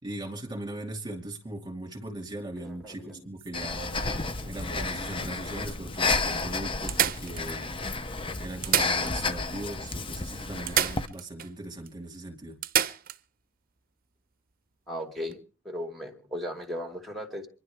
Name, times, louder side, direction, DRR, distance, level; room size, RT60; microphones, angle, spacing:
voice 1, 0.0-4.0 4.4-7.7 8.4-12.6, right 1 dB, 20° right, 2.4 m, -39 dB
voice 2, 2.6-3.1 14.9-15.4 15.6-17.5, equal, ahead, 2.6 m, -36 dB
Staple Gun Into Wood, 3.4-5.0 5.7-5.8 6.0-6.1 6.9-7.9 8.5-9.5 9.7-9.8 10.7-11.5 11.9-12.0 12.6-13.2 15.2-15.3, right 10 dB, 40° right, 0.7 m, -30 dB
Breathing, 3.5-11.1, left 3 dB, 25° left, 0.7 m, -31 dB
27.0 x 11.0 x 3.6 m
head